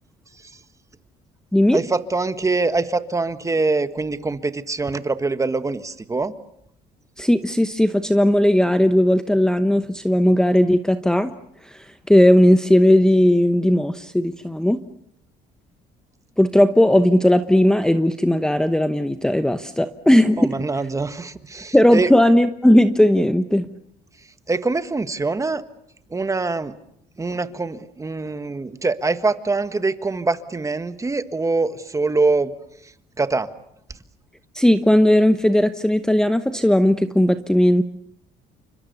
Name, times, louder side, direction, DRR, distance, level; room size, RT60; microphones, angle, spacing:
voice 1, 1.7-6.3 20.4-22.1 24.5-25.6 26.1-26.7 27.2-32.5 33.2-33.5, right 3 dB, 20° right, 11 dB, 1.6 m, -24 dB
voice 2, 7.2-11.3 11.6-14.8 16.4-20.6 21.7-23.7 34.5-37.8, left 1 dB, 5° left, 10 dB, 1.0 m, -17 dB
29.5 x 25.0 x 7.0 m, 0.74 s
cardioid pair, 110°, 17 cm